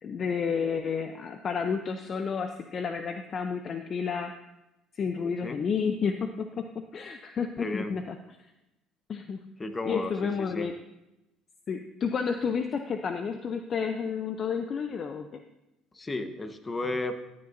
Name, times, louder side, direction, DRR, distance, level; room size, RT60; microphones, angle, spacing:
voice 1, 0.0-4.3 4.9-8.2 9.1-9.4 9.9-10.7 11.7-15.4, left 6 dB, 45° left, 7 dB, 0.6 m, -31 dB
voice 2, 7.6-7.9 9.6-10.7 15.9-17.1, left 2 dB, 25° left, 8 dB, 1.1 m, -33 dB
13.5 x 8.7 x 2.6 m, 0.94 s
supercardioid pair, 75°, 0 cm